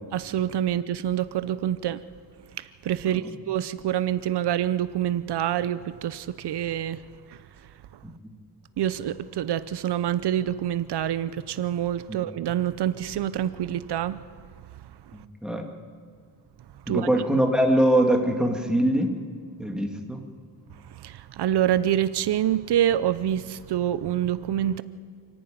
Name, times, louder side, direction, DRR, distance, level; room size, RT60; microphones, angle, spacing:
voice 1, 0.1-2.0 2.6-7.0 7.3-7.7 8.8-14.2 14.8-15.2 16.9-17.1 20.8-24.8, right 11 dB, 75° right, 0.7 m, -27 dB
voice 2, 15.1-15.7 16.9-19.1 19.6-20.2, right 1 dB, ahead, 2.2 m, -23 dB
28.0 x 11.0 x 9.3 m
wide cardioid pair, 115°, 40 cm